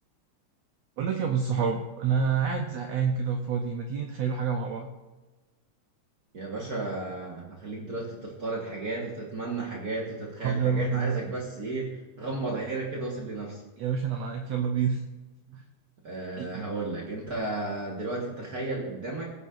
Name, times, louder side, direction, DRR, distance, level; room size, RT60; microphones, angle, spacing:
voice 1, 1.0-4.9 10.4-11.2 13.8-15.0 15.5-15.6 16.4-16.6, right 6 dB, 90° right, 4 dB, 1.4 m, -28 dB
voice 2, 6.3-13.6 16.0-19.3, right 2 dB, 60° right, -2 dB, 0.9 m, -33 dB
17.5 x 8.4 x 2.5 m, 1.2 s
omnidirectional pair, 3.9 m